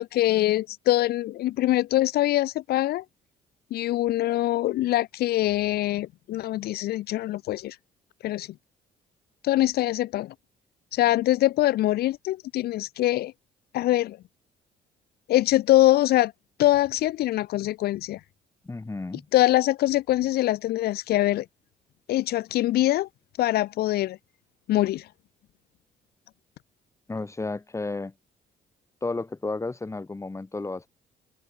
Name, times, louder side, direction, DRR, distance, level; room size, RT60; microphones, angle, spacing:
voice 1, 0.0-3.0 3.7-7.8 8.2-8.5 9.4-10.3 10.9-13.3 13.7-14.2 15.3-16.3 16.6-18.2 19.3-21.4 22.1-23.1 23.4-24.2 24.7-25.1, left 15 dB, 75° left, 0.7 m, -23 dB
voice 2, 18.6-19.3 27.1-28.1 29.0-30.9, left 3 dB, 15° left, 2.2 m, -32 dB
open air
cardioid pair, 95°, 16 cm